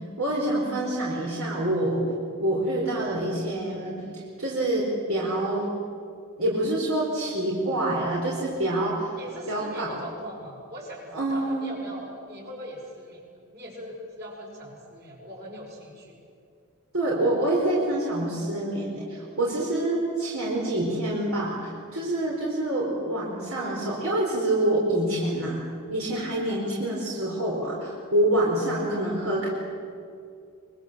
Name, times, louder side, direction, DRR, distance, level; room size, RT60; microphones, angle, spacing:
voice 1, 0.2-2.0 2.4-4.0 4.4-5.7 6.4-9.1 9.5-10.0 11.1-11.7 16.9-25.6 25.9-29.5, right 1 dB, 75° right, -3 dB, 4.6 m, -26 dB
voice 2, 9.2-13.2 13.5-16.1 26.6-26.8, equal, 50° right, -2 dB, 6.8 m, -41 dB
24.5 x 23.0 x 7.6 m, 2.3 s
head